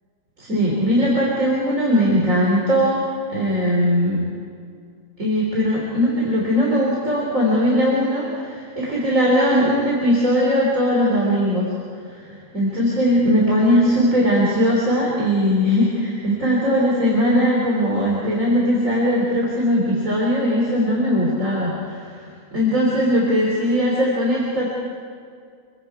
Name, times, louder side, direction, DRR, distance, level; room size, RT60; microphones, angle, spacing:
voice 1, 0.4-3.0 3.3-4.3 5.2-11.7 12.1-24.7, equal, 55° right, -4 dB, 3.9 m, -19 dB
27.0 x 22.5 x 4.8 m, 2.2 s
omnidirectional pair, 1.7 m